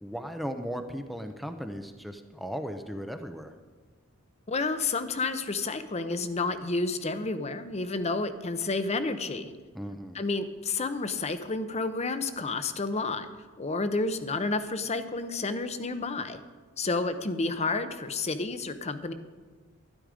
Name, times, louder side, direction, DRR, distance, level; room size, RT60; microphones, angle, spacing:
voice 1, 0.0-3.5 9.7-10.2, equal, ahead, 6 dB, 0.6 m, -37 dB
voice 2, 4.5-9.5 10.1-13.3 13.6-16.4 16.8-19.1, left 3 dB, 30° left, 10 dB, 0.7 m, -30 dB
12.5 x 11.0 x 5.0 m, 1.4 s
head